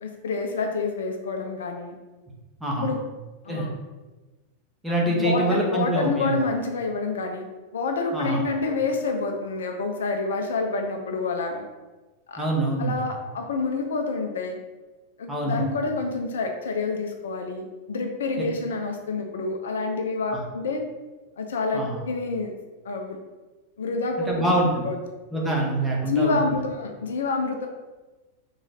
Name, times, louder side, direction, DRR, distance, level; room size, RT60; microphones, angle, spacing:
voice 1, 0.0-2.0 2.8-3.0 3.4-3.7 5.0-7.5 7.7-11.7 12.3-12.4 12.8-14.6 15.2-20.8 21.4-22.5 22.8-23.2 23.8-24.5 24.8-25.0 26.0-27.7, left 3 dB, 65° left, 4 dB, 0.4 m, -28 dB
voice 2, 4.8-6.4 8.1-8.4 12.4-13.0 15.3-15.6 20.3-20.4 21.7-22.0 24.3-24.9 25.3-26.4, right 1 dB, 5° right, -3 dB, 1.0 m, -25 dB
3.8 x 3.1 x 3.5 m, 1.2 s
figure-of-eight pair, 90°, 0 cm